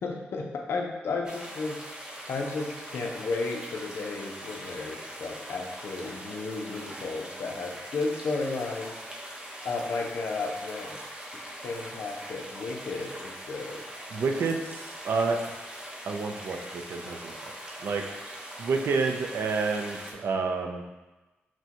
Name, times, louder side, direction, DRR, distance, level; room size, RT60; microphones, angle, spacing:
voice 1, 0.0-1.8 2.1-9.0 9.6-11.0 11.6-13.8, left 3 dB, 75° left, 1 dB, 0.6 m, -33 dB
sound 1, 1.2-20.1, equal, 20° right, 0.7 m, -42 dB
voice 2, 14.1-15.6 16.0-17.5 17.8-18.1 18.6-20.8, right 4 dB, 75° right, 3 dB, 0.4 m, -29 dB
6.0 x 2.2 x 2.9 m, 1.1 s
cardioid pair, 100°, 4 cm